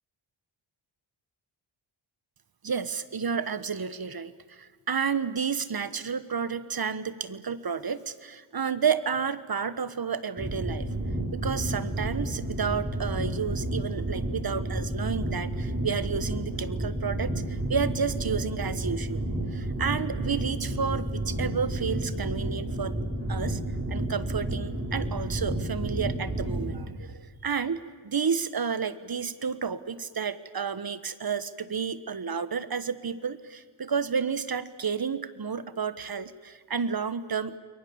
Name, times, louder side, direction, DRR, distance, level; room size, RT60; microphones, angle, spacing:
voice 1, 2.6-10.9 11.3-19.2 19.5-23.0 23.3-23.6 23.9-37.6, right 6 dB, 45° right, 15 dB, 1.3 m, -31 dB
sound 1, 10.4-26.8, right 1 dB, 25° right, 4.6 m, -31 dB
29.0 x 22.0 x 7.2 m, 1.5 s
cardioid pair, 70°, 50 cm